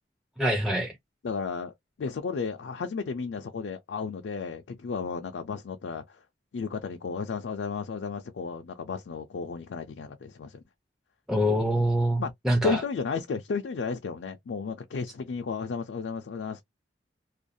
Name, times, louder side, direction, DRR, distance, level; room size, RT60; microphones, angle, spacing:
voice 1, 0.4-1.0 11.3-12.8, equal, 5° right, 0.4 m, -25 dB
voice 2, 1.2-1.7 2.0-6.2 6.5-10.6 12.2-12.3 12.6-16.6, left 5 dB, 75° left, 0.4 m, -33 dB
2.5 x 2.2 x 2.6 m
head